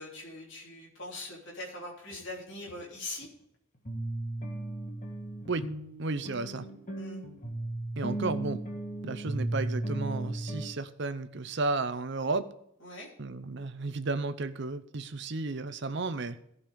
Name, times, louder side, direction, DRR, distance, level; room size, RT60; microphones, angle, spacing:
voice 1, 0.0-3.3 7.0-7.2 12.8-13.1, left 2 dB, 55° left, -3 dB, 3.4 m, -42 dB
sound 1, 2.1-2.2 2.7-2.8 3.2-3.3 3.9-10.7, right 1 dB, 35° left, 1.6 m, -36 dB
voice 2, 6.0-6.6 8.0-8.6 9.0-12.4 13.2-16.4, right 3 dB, 55° right, 12 dB, 0.7 m, -33 dB
15.0 x 5.5 x 5.1 m, 0.77 s
head